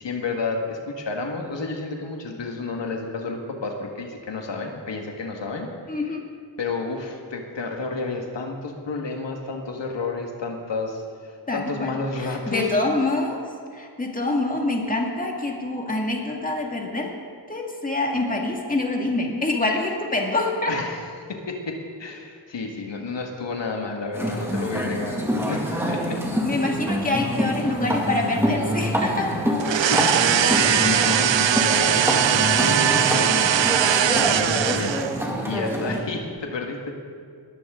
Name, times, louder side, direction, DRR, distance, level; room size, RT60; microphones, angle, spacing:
voice 1, 0.0-5.7 6.6-12.7 20.6-21.0 21.3-26.2 29.9-35.1 35.5-37.0, left 3 dB, 80° left, 2 dB, 1.8 m, -31 dB
voice 2, 5.9-6.2 11.5-12.0 12.2-13.4 13.7-17.1 17.5-20.7 26.4-29.4, left 2 dB, 20° left, 0 dB, 2.0 m, -26 dB
sound 1, 24.1-36.0, equal, 5° right, 2.3 m, -26 dB
sound 2, 29.6-35.2, right 10 dB, 85° right, 0.6 m, -20 dB
20.5 x 14.5 x 3.8 m, 2.2 s
wide cardioid pair, 125°, 43 cm